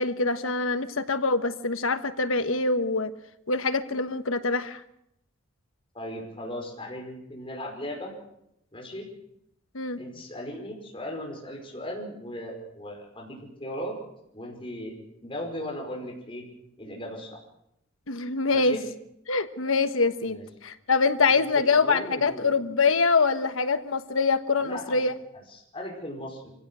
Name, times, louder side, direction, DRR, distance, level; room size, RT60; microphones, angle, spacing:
voice 1, 0.0-3.1 3.5-4.8 9.7-10.0 18.1-18.8 19.3-20.4 20.6-25.1, left 4 dB, 80° left, 10 dB, 1.3 m, -24 dB
voice 2, 5.9-8.1 8.7-9.1 10.0-13.9 14.3-14.9 15.2-16.4 16.8-17.4 18.5-18.8 20.3-20.5 21.3-22.5 24.6-25.0 25.3-26.5, equal, 25° left, 0 dB, 5.2 m, -37 dB
26.0 x 16.5 x 6.3 m, 0.79 s
head